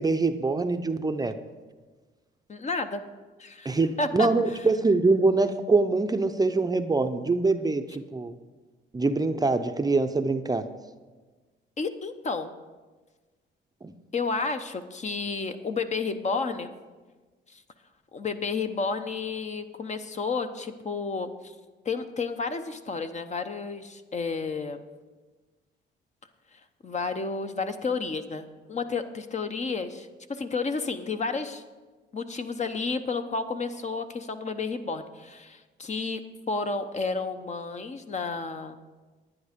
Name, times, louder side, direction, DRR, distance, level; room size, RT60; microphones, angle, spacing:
voice 1, 0.0-1.4 3.6-8.3 8.9-10.7 13.8-13.9, right 3 dB, 20° right, 8 dB, 0.6 m, -24 dB
voice 2, 2.5-3.0 3.4-4.3 11.8-12.5 14.1-16.7 17.5-17.6 18.1-21.5 21.8-24.9 26.5-31.6 32.1-36.2 36.5-38.8, left 4 dB, 35° left, 8 dB, 0.8 m, -31 dB
11.0 x 9.4 x 5.2 m, 1.3 s
cardioid pair, 90°, 20 cm